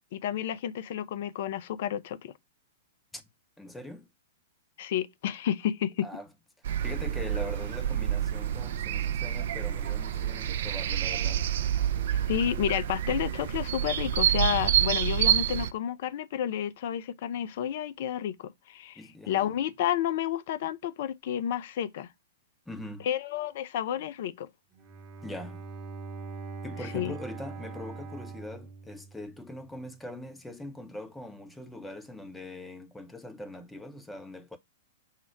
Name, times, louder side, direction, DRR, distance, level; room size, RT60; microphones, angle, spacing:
voice 1, 0.1-2.3 4.8-6.1 12.3-19.0 19.3-22.1 23.0-24.5 26.9-27.2, left 10 dB, 50° left, 0.4 m, -31 dB
voice 2, 3.6-4.1 6.0-6.3 6.8-11.4 19.0-19.5 22.7-23.1 25.2-25.6 26.6-34.6, left 1 dB, 5° left, 0.6 m, -42 dB
sound 1, 6.7-15.7, right 10 dB, 55° right, 0.3 m, -28 dB
Bowed string instrument, 24.7-29.7, right 4 dB, 30° right, 0.9 m, -42 dB
5.7 x 2.0 x 4.6 m
figure-of-eight pair, 105°, 0 cm